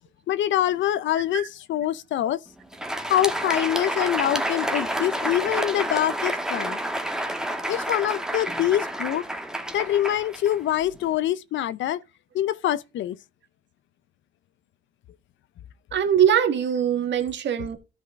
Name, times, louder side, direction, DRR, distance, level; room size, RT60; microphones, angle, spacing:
voice 1, 0.3-2.4 3.1-6.8 7.7-9.2 9.7-12.0 12.3-13.2, left 12 dB, 70° left, 0.6 m, -25 dB
Crowd, 2.6-11.1, right 1 dB, 5° right, 1.3 m, -29 dB
voice 2, 15.9-17.8, right 9 dB, 65° right, 1.6 m, -22 dB
13.0 x 5.4 x 3.6 m
cardioid pair, 90°, 20 cm